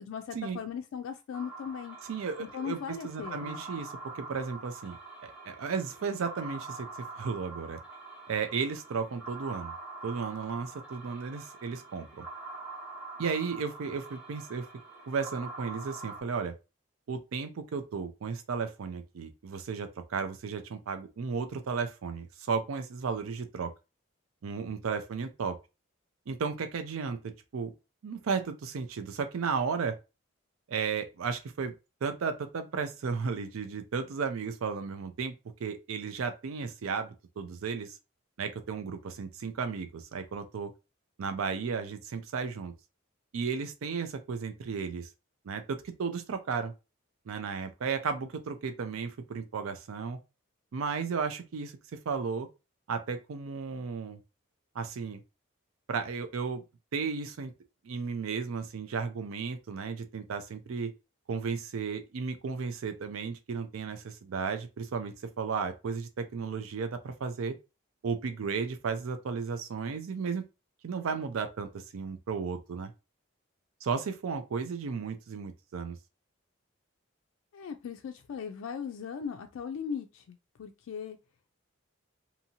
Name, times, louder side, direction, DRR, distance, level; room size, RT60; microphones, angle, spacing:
voice 1, 0.0-2.0 2.4-3.6 77.5-81.2, left 7 dB, 75° left, 0.3 m, -38 dB
sound 1, 1.3-16.2, right 3 dB, 5° right, 0.6 m, -45 dB
voice 2, 2.1-5.0 5.2-7.8 8.3-9.7 10.0-12.2 13.2-14.7 15.1-16.5 17.1-23.7 24.4-25.6 26.3-27.2 27.5-27.7 28.0-29.9 30.7-31.7 32.0-35.3 35.6-38.0 38.4-40.7 41.2-42.7 43.3-45.1 45.4-46.7 47.3-50.2 50.7-52.5 52.9-54.2 54.7-55.2 55.9-56.6 56.9-57.5 57.8-60.9 61.3-67.6 68.0-70.5 70.8-72.9 73.8-76.0, right 5 dB, 85° right, 0.4 m, -34 dB
2.7 x 2.6 x 2.7 m
head